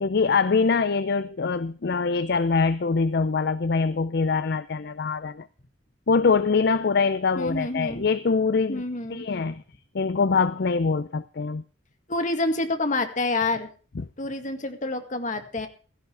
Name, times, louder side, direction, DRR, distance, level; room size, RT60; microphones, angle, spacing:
voice 1, 0.0-5.5 6.1-8.8 9.1-9.6 9.9-11.6 14.0-14.1, left 4 dB, 55° left, 0.5 m, -23 dB
voice 2, 7.4-8.0 8.7-9.3 12.1-13.7 14.2-15.7, left 2 dB, 40° left, 2.0 m, -28 dB
16.5 x 13.5 x 3.4 m
head